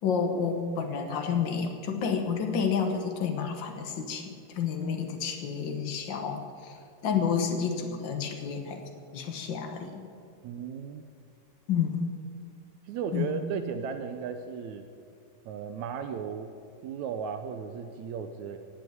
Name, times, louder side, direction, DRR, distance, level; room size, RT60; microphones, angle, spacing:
voice 1, 0.0-6.8 7.0-8.8 9.1-10.0 11.7-12.0 13.1-13.5, left 6 dB, 80° left, 5 dB, 1.0 m, -30 dB
voice 2, 10.4-11.0 12.9-14.9 15.5-16.5 16.8-18.6, right 7 dB, 75° right, 8 dB, 1.8 m, -35 dB
16.5 x 8.4 x 9.4 m, 2.3 s
omnidirectional pair, 4.0 m